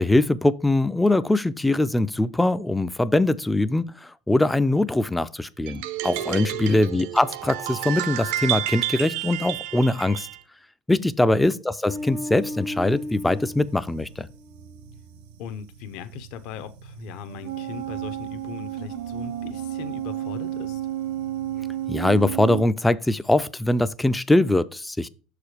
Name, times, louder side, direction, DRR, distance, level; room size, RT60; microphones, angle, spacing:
voice 1, 0.0-10.3 10.9-14.3 21.9-25.1, left 2 dB, 5° left, 0.3 m, -22 dB
sound 1, 5.7-10.4, right 13 dB, 75° right, 0.6 m, -30 dB
voice 2, 6.5-6.9 11.2-11.5 15.4-20.9, left 8 dB, 60° left, 0.7 m, -39 dB
sound 2, 11.9-22.6, right 7 dB, 90° right, 1.4 m, -33 dB
6.5 x 4.9 x 4.9 m
supercardioid pair, 145°, 0 cm